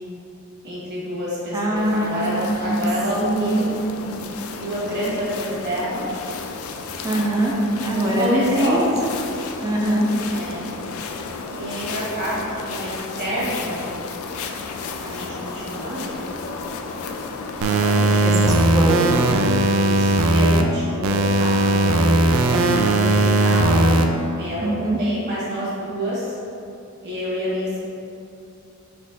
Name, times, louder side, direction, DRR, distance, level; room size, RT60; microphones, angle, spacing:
voice 1, 0.6-3.7 4.6-6.0 7.8-8.8 10.3-10.6 11.5-12.4 12.7-13.8 15.0-16.2 17.6-18.6 19.7-22.0 22.4-23.8 24.4-26.3 27.0-27.8, equal, 50° right, -7 dB, 1.5 m, -28 dB
voice 2, 1.5-2.8 3.2-4.1 7.0-7.5 7.8-8.8 9.6-10.1 18.2-19.4 24.6-25.0, right 1 dB, 15° right, -2 dB, 0.5 m, -23 dB
sound 1, 1.8-18.2, left 4 dB, 80° left, 0.3 m, -33 dB
sound 2, 17.6-20.6 21.0-24.0, right 2 dB, 70° right, 0.4 m, -18 dB
4.2 x 3.1 x 4.0 m, 2.7 s
head